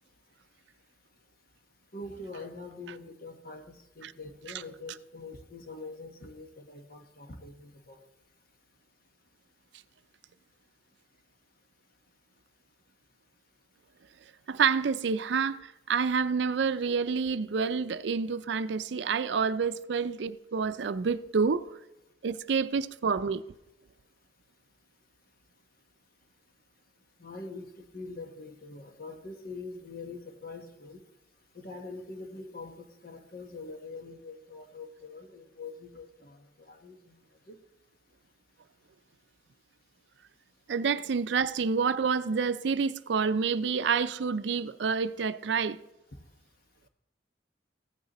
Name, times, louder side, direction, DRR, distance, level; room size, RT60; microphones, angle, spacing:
voice 1, 1.9-8.0 27.2-31.0 31.5-37.2 37.5-37.6, left 3 dB, 50° left, 1.2 m, -44 dB
voice 2, 14.5-21.6 22.2-23.4 40.7-45.8, right 5 dB, 70° right, 0.4 m, -28 dB
15.0 x 9.1 x 3.0 m
head